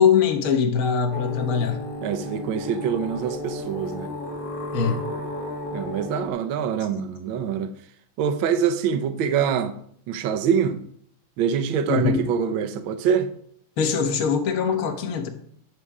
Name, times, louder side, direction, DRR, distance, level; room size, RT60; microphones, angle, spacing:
voice 1, 0.0-1.8 4.7-5.0 11.9-12.2 13.8-15.3, left 6 dB, 45° left, 1.3 m, -22 dB
sound 1, 1.1-6.3, left 1 dB, 30° left, 1.2 m, -33 dB
voice 2, 2.0-4.1 5.7-7.7 8.2-9.7 10.1-10.8 11.4-13.3, right 7 dB, 70° right, 1.5 m, -24 dB
9.8 x 6.7 x 4.8 m
omnidirectional pair, 2.4 m